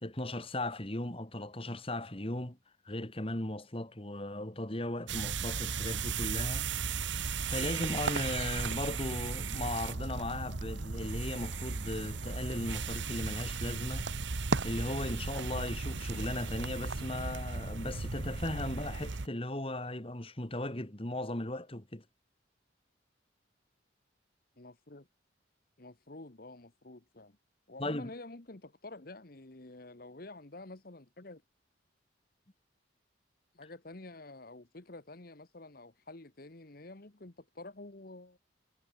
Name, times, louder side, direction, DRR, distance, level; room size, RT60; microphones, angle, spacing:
voice 1, 0.0-2.6 2.9-6.7 7.5-14.1 14.6-22.0 27.8-28.1, left 1 dB, 30° left, 2.1 m, -37 dB
sound 1, 5.1-19.3, right 4 dB, 70° right, 1.2 m, -35 dB
voice 2, 24.6-25.1 25.8-27.4 27.7-31.4 33.5-38.4, left 2 dB, 50° left, 1.3 m, -49 dB
head